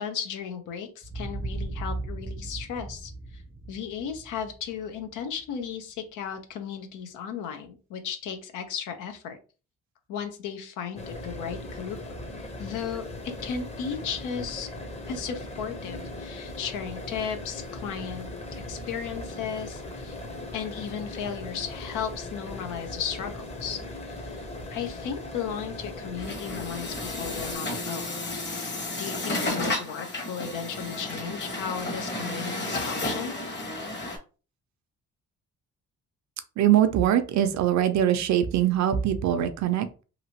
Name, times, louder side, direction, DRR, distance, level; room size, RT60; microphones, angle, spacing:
voice 1, 0.0-3.4 3.7-9.4 10.1-12.0 12.6-13.1 13.4-14.7 15.1-18.3 18.7-20.2 20.5-28.1 29.0-33.3, left 7 dB, 90° left, 7 dB, 0.7 m, -35 dB
sound 1, 1.0-5.6, right 2 dB, 15° right, 0.5 m, -37 dB
sound 2, 11.0-27.6, left 2 dB, 20° left, 0.7 m, -39 dB
Truck, 26.2-34.2, left 2 dB, 35° left, 1.2 m, -32 dB
voice 2, 36.6-40.0, right 11 dB, 65° right, 9 dB, 0.5 m, -23 dB
2.9 x 2.6 x 2.8 m, 0.34 s
cardioid pair, 90°, 30 cm